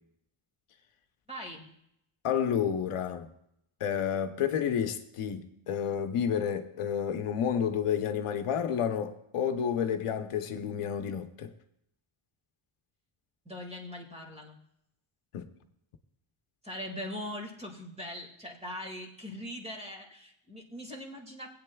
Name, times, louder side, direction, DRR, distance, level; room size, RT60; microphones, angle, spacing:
voice 1, 1.3-1.6 13.5-14.6 16.6-21.5, left 1 dB, 10° right, 2.0 m, -41 dB
voice 2, 2.2-3.3 3.8-11.5 15.3-15.5, left 8 dB, 90° left, 0.9 m, -30 dB
19.5 x 8.6 x 2.3 m
wide cardioid pair, 115°, 50 cm